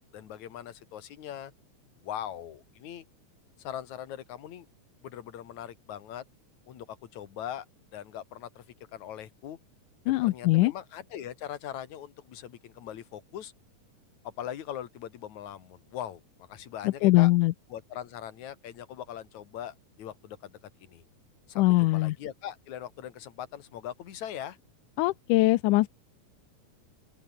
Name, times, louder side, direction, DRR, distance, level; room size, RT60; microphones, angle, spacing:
voice 1, 0.0-1.5 2.0-3.1 3.6-4.7 5.0-6.2 6.7-7.7 7.9-8.6 8.9-9.6 10.1-13.5 14.2-17.3 17.7-20.5 20.8-21.0 21.5-24.6, left 10 dB, 65° left, 3.0 m, -41 dB
voice 2, 10.1-10.7 16.8-17.5 21.6-22.2 25.0-25.9, left 19 dB, 80° left, 2.1 m, -22 dB
open air
omnidirectional pair, 3.8 m